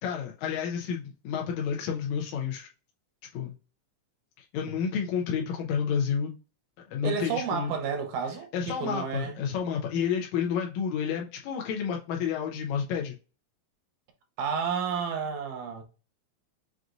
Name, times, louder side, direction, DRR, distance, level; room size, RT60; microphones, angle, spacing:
voice 1, 0.0-2.7 3.3-3.5 4.4-6.4 6.9-7.7 8.5-13.2, left 7 dB, 80° left, 1.9 m, -30 dB
voice 2, 7.0-9.4 14.4-15.8, right 6 dB, 75° right, 2.2 m, -31 dB
5.9 x 2.5 x 2.5 m
omnidirectional pair, 3.5 m